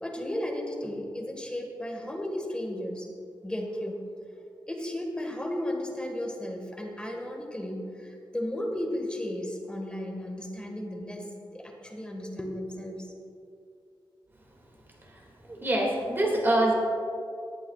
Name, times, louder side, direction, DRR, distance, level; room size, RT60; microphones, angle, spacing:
voice 1, 0.0-3.1 3.4-4.0 4.7-13.1, left 1 dB, 10° left, 1 dB, 1.7 m, -34 dB
voice 2, 15.5-16.7, right 1 dB, 25° right, -1 dB, 2.3 m, -24 dB
18.0 x 10.5 x 2.4 m, 2.5 s
wide cardioid pair, 125°, 8 cm